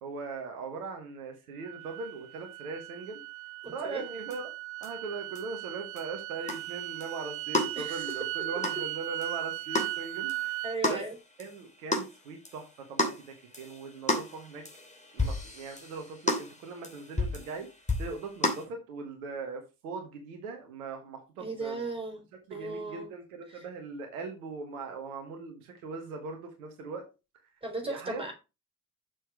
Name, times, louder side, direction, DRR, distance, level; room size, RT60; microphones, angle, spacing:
voice 1, 0.0-3.2 3.7-4.5 4.8-10.5 10.9-11.0 11.4-14.6 15.1-17.7 18.0-21.8 22.5-27.1 27.8-28.2, right 4 dB, 75° right, 4 dB, 1.5 m, -40 dB
sound 1, 1.6-10.8, right 16 dB, 55° right, 0.6 m, -37 dB
voice 2, 3.6-4.0 7.8-8.1 10.6-11.1 21.4-22.2 22.5-23.1 23.5-23.7 27.6-28.3, right 2 dB, 10° right, 3 dB, 4.2 m, -36 dB
sound 2, 4.3-4.4 4.8-4.9 5.3-5.4 6.0-6.1 6.5-18.6, left 2 dB, 15° left, 2.8 m, -34 dB
6.6 x 6.3 x 4.6 m, 0.28 s
figure-of-eight pair, 45°, 44 cm